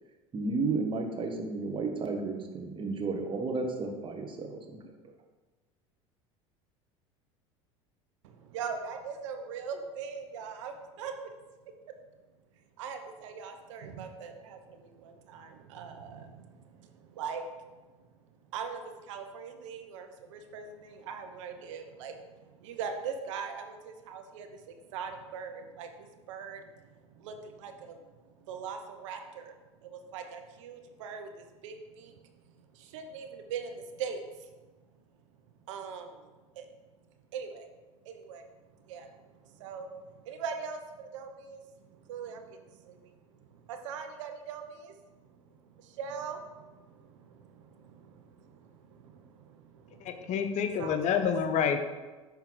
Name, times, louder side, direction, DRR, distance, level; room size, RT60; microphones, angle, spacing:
voice 1, 0.3-4.9, right 3 dB, 30° right, 3 dB, 1.0 m, -33 dB
voice 2, 8.2-11.3 12.8-17.5 18.5-29.5 29.8-32.2 32.5-34.5 35.6-36.3 36.5-36.7 37.3-37.7 38.0-50.4 50.8-51.3, right 6 dB, 80° right, 6 dB, 0.6 m, -42 dB
voice 3, 50.0-51.8, left 7 dB, 50° left, 7 dB, 0.7 m, -28 dB
5.8 x 3.6 x 4.6 m, 1.3 s
hypercardioid pair, 80°, 16 cm